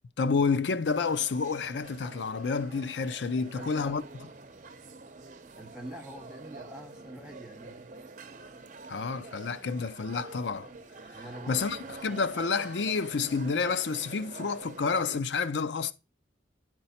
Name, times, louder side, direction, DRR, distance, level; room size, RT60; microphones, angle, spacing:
voice 1, 0.2-4.0 8.9-10.7 11.1-15.9, left 5 dB, 75° left, 0.5 m, -29 dB
sound 1, 0.9-15.2, right 3 dB, 45° right, 0.8 m, -46 dB
voice 2, 3.3-4.0 5.6-7.9 11.1-11.9, right 1 dB, 5° right, 2.0 m, -45 dB
10.5 x 4.4 x 4.2 m
head